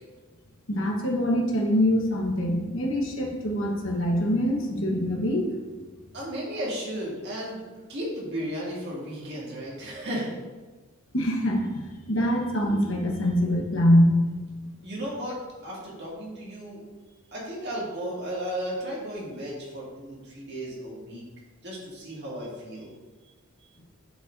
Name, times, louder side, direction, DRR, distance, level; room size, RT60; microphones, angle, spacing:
voice 1, 0.7-5.5 11.1-14.2, equal, 65° left, 0 dB, 1.2 m, -24 dB
voice 2, 6.1-10.3 14.8-16.8 17.3-21.2 21.6-22.9, equal, 50° right, -4 dB, 2.0 m, -34 dB
9.0 x 5.6 x 2.6 m, 1.3 s
head